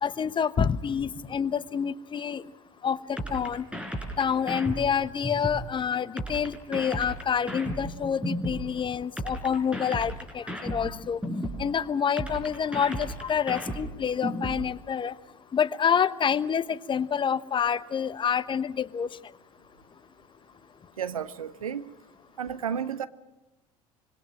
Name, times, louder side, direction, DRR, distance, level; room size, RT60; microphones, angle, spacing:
voice 1, 0.0-2.4 2.8-3.6 4.2-11.2 11.6-15.1 15.5-19.1, left 7 dB, 30° left, 16 dB, 1.0 m, -27 dB
sound 1, 3.2-5.7 6.2-8.7 9.2-11.7 12.2-14.7, equal, 5° right, 4.9 m, -33 dB
voice 2, 21.0-21.9 22.4-23.1, right 8 dB, 80° right, 14 dB, 0.9 m, -32 dB
25.5 x 24.0 x 6.4 m, 1.0 s
figure-of-eight pair, 65°, 18 cm